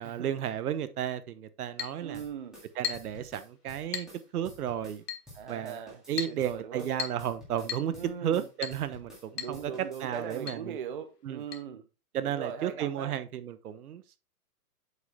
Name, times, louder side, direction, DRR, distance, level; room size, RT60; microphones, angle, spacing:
voice 1, 0.0-2.2 2.8-4.1 4.3-5.0 5.5-5.8 6.1-7.9 8.2-9.7 10.0-10.8 11.2-11.4 12.1-14.0, right 10 dB, 70° right, 1.1 m, -33 dB
Chink clink, 1.8-2.0 2.8-3.2 3.9-4.2 5.1-5.3 6.2-6.4 7.0-7.3 7.7-7.9 8.6-8.8 9.4-9.6 9.8-9.9 10.5-10.6 11.5-11.6, left 9 dB, 90° left, 1.6 m, -36 dB
voice 2, 2.0-2.6 5.3-6.9 7.9-8.5 9.3-11.9 12.2-13.2, right 7 dB, 35° right, 0.5 m, -40 dB
sound 1, 2.1-5.0 5.3-9.3 9.5-10.5, equal, ahead, 2.0 m, -51 dB
8.0 x 5.4 x 3.4 m
hypercardioid pair, 175°, 47 cm